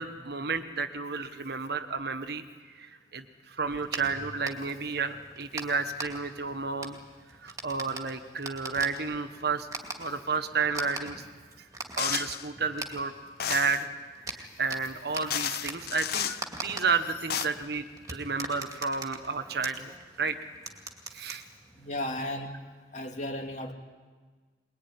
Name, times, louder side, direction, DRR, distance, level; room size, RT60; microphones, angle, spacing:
voice 1, 0.0-2.4 2.7-7.0 7.4-9.7 10.0-11.2 11.9-13.1 13.4-13.9 14.3-20.3 21.1-21.4, right 4 dB, 60° right, 8 dB, 1.5 m, -31 dB
sound 1, 3.6-22.1, right 2 dB, 20° right, 2.4 m, -43 dB
sound 2, 12.0-12.5 13.4-13.9 14.8-14.9 15.3-16.4 17.1-17.5, left 9 dB, 55° left, 0.8 m, -32 dB
voice 2, 21.8-22.5 22.9-23.7, left 1 dB, 40° left, 3 dB, 2.7 m, -34 dB
22.5 x 22.0 x 9.8 m, 1.4 s
head